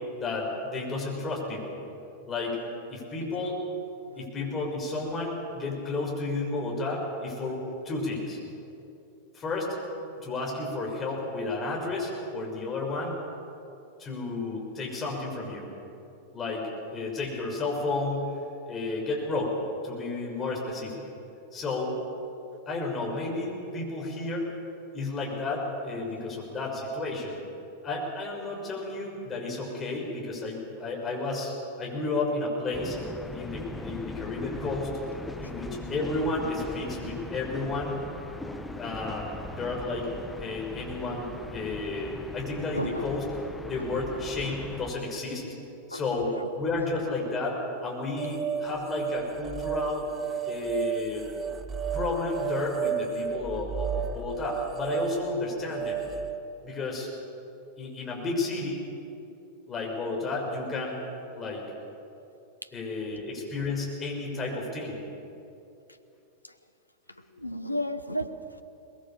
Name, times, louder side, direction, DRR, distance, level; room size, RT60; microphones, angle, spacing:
voice 1, 0.2-1.8 2.3-2.6 2.9-3.6 4.2-8.4 9.3-9.7 10.2-13.2 14.0-15.7 16.3-18.3 18.7-19.6 19.8-21.0 21.5-21.9 22.7-24.5 24.9-27.4 27.8-33.0 33.3-34.9 35.4-38.0 38.8-40.1 40.4-43.2 43.6-45.5 45.9-50.1 50.5-51.3 51.9-56.0 56.6-57.1 57.8-58.8 59.7-61.0 61.3-61.6 62.7-65.0, left 3 dB, 20° left, -1 dB, 6.3 m, -32 dB
sound 1, 32.7-44.9, left 2 dB, 5° left, 1.4 m, -40 dB
voice 2, 42.7-43.1 45.9-46.5 62.6-62.7 66.4-66.5 67.3-68.6, equal, 85° left, 9 dB, 1.0 m, -33 dB
sound 2, 48.2-56.4, right 7 dB, 20° right, 1.0 m, -32 dB
22.5 x 21.0 x 7.3 m, 2.8 s
figure-of-eight pair, 90°, 0 cm